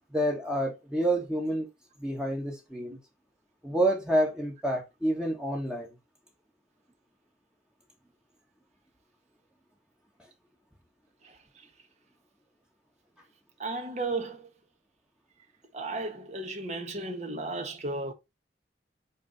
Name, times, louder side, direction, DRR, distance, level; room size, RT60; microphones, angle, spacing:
voice 1, 0.1-1.7 2.0-3.0 3.6-5.9, right 1 dB, 5° right, 1.4 m, -28 dB
voice 2, 13.6-14.5 15.7-18.1, right 2 dB, 40° right, 1.5 m, -34 dB
8.3 x 3.4 x 4.0 m
head